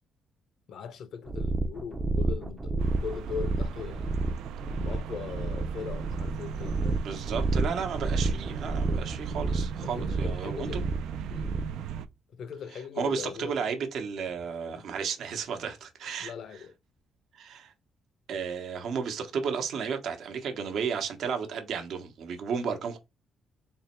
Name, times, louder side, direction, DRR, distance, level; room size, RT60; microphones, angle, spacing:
voice 1, 0.7-4.2 4.8-7.0 9.8-10.9 11.3-11.6 12.4-13.7 14.6-14.9 16.2-16.7 22.6-22.8, left 7 dB, 70° left, 0.7 m, -40 dB
sound 1, 1.3-11.8, right 2 dB, 25° right, 0.5 m, -30 dB
sound 2, 2.8-12.1, right 8 dB, 90° right, 0.4 m, -38 dB
voice 2, 7.0-10.9 13.0-16.3 17.3-17.7 18.3-23.0, right 6 dB, 70° right, 0.9 m, -33 dB
3.5 x 2.2 x 4.2 m
cardioid pair, 90°, 0 cm